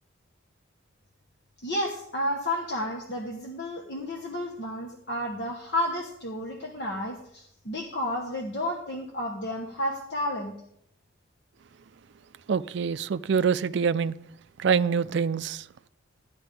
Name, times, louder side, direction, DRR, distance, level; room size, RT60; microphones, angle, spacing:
voice 1, 1.6-10.5, left 1 dB, 55° left, 1.2 m, -31 dB
voice 2, 12.5-14.2 14.6-15.6, right 6 dB, 55° right, 0.4 m, -25 dB
13.5 x 10.5 x 3.4 m
head